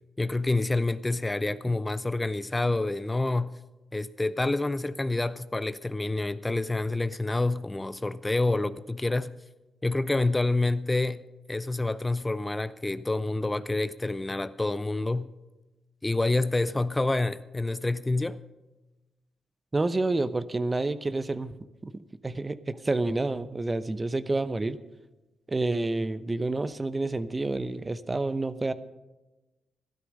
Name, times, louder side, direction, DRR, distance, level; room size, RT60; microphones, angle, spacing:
voice 1, 0.2-3.6 3.9-9.4 9.8-11.2 11.5-15.3 16.0-18.4, left 2 dB, 20° left, 0.6 m, -28 dB
voice 2, 19.7-21.5 21.8-24.8 25.5-28.7, right 2 dB, 30° right, 0.8 m, -29 dB
13.0 x 12.5 x 5.3 m
hypercardioid pair, 45°, 0 cm